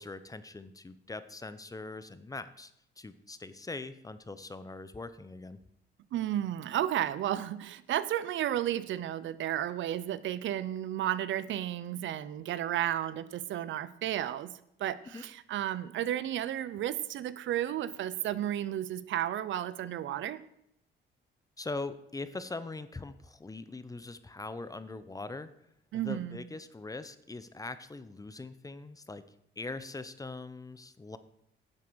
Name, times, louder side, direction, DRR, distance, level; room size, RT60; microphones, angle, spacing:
voice 1, 0.0-2.7 3.0-5.6 15.1-15.2 21.6-25.5 26.0-29.2 29.6-31.2, left 3 dB, 15° left, 13 dB, 0.8 m, -41 dB
voice 2, 6.1-14.5 14.8-20.4 25.9-26.4, right 12 dB, 70° right, 16 dB, 0.6 m, -33 dB
11.0 x 7.4 x 6.3 m, 0.75 s
cardioid pair, 90°, 20 cm